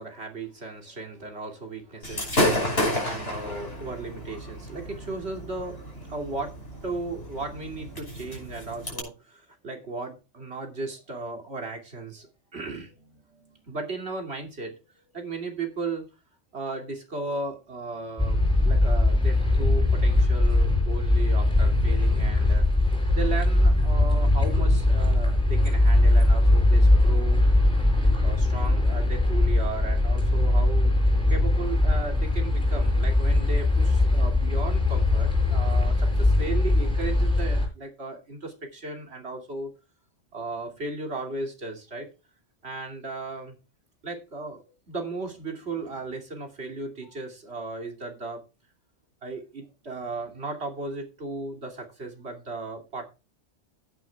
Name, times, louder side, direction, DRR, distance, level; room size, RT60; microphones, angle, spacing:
voice 1, 0.0-14.8 15.1-16.1 16.5-22.6 23.1-27.4 28.2-30.9 31.3-39.7 40.3-42.1 42.6-43.6 44.0-48.4 49.2-53.1, right 3 dB, 60° right, 2 dB, 3.0 m, -36 dB
Gunshot gunfire / Fireworks, 2.0-9.0, left 1 dB, 55° left, 5.8 m, -31 dB
sound 1, 18.2-37.7, left 2 dB, 5° left, 5.9 m, -21 dB
16.0 x 9.3 x 2.4 m, 0.30 s
omnidirectional pair, 1.3 m